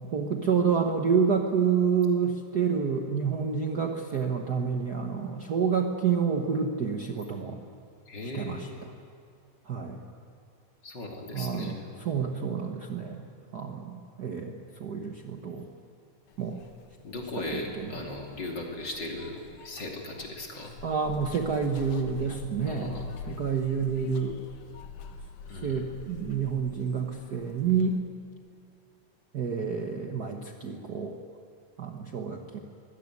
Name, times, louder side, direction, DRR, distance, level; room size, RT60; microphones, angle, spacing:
voice 1, 0.1-7.6 8.3-8.9 9.6-10.0 11.3-15.7 16.4-16.6 17.4-17.9 20.8-23.0 23.3-24.4 25.6-28.0 29.3-31.2 31.8-32.6, right 6 dB, 80° right, 3 dB, 0.9 m, -29 dB
voice 2, 8.1-8.8 10.8-11.8 17.0-20.7 22.7-23.1 25.5-25.8, left 2 dB, 35° left, 0 dB, 3.2 m, -38 dB
Zipper (clothing), 16.3-28.0, left 6 dB, 75° left, 2.9 m, -47 dB
24.0 x 17.0 x 9.5 m, 2.3 s
omnidirectional pair, 3.6 m